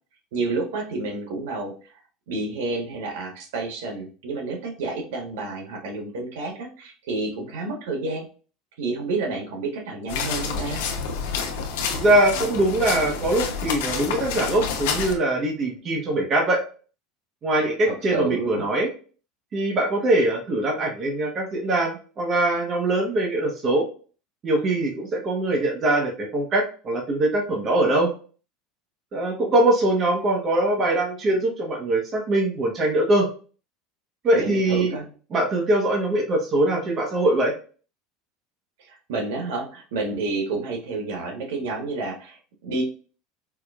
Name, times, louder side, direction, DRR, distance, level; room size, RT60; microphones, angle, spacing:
voice 1, 0.3-1.7 2.3-8.3 8.8-10.8 17.8-18.7 34.3-35.1 38.8-42.8, right 3 dB, 90° right, 1 dB, 1.2 m, -29 dB
sound 1, 10.1-15.1, left 6 dB, 85° left, 0.7 m, -28 dB
voice 2, 11.9-16.6 17.4-18.9 19.5-23.8 24.4-28.1 29.1-33.3 34.2-34.9 35.3-37.5, right 1 dB, 30° right, 0 dB, 1.0 m, -22 dB
4.7 x 2.4 x 2.3 m, 0.38 s
supercardioid pair, 150°, 0 cm